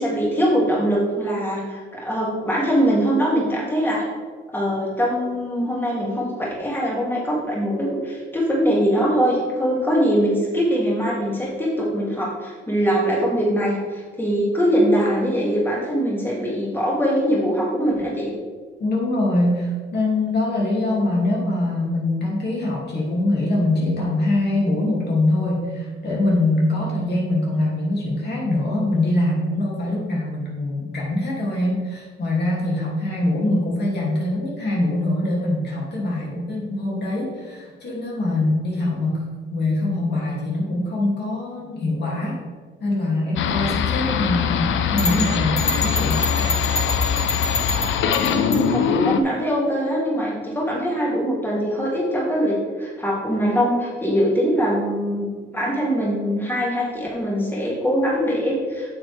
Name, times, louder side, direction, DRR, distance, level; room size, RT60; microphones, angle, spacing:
voice 1, 0.0-4.0 4.5-18.3 48.3-55.3 55.5-59.0, equal, 10° left, -4 dB, 2.4 m, -22 dB
voice 2, 18.8-39.2 39.5-42.4 42.8-46.3, left 2 dB, 55° left, -4 dB, 2.6 m, -23 dB
sound 1, 43.4-49.2, left 7 dB, 75° left, 0.6 m, -22 dB
sound 2, 45.0-48.7, left 2 dB, 35° left, 1.6 m, -27 dB
8.6 x 7.1 x 3.5 m, 1.4 s
cardioid pair, 90°, 20 cm